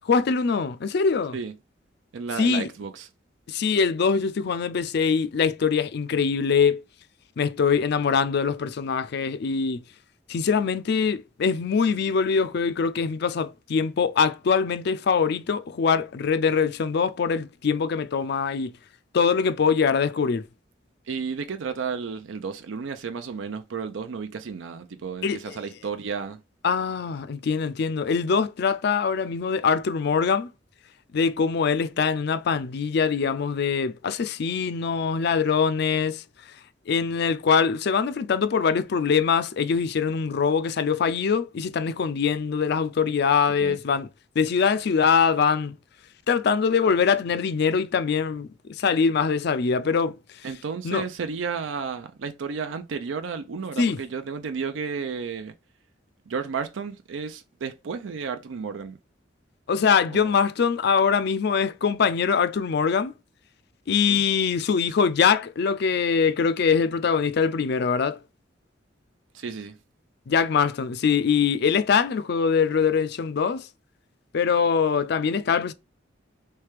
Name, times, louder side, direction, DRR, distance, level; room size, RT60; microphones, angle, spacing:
voice 1, 0.1-1.4 2.4-2.7 3.5-6.8 7.4-9.8 10.3-18.7 19.1-20.4 25.2-25.6 26.6-30.5 31.1-36.2 36.9-44.1 44.4-45.8 46.3-50.2 50.8-51.0 53.8-54.0 59.7-63.1 63.9-68.2 70.3-73.7 74.3-75.7, left 6 dB, 60° left, 0.4 m, -23 dB
voice 2, 2.1-3.1 21.1-26.4 43.5-43.8 50.4-55.5 56.3-59.0 60.1-60.4 64.1-64.2 69.3-69.8, right 5 dB, 80° right, 0.5 m, -32 dB
3.3 x 3.2 x 3.3 m
head